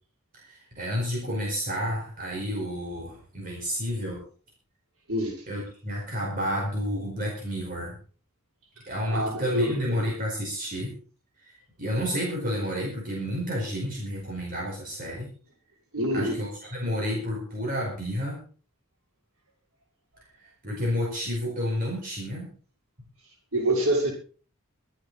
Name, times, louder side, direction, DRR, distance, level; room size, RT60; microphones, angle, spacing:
voice 1, 0.3-4.2 5.5-8.0 8.9-10.9 11.4-11.5 11.8-15.3 16.1-18.4 20.4-22.5, equal, 40° right, -2 dB, 4.9 m, -30 dB
voice 2, 9.1-10.0 15.9-16.4 23.5-24.1, right 1 dB, 90° right, -2 dB, 6.0 m, -26 dB
25.5 x 8.6 x 4.2 m, 0.42 s
head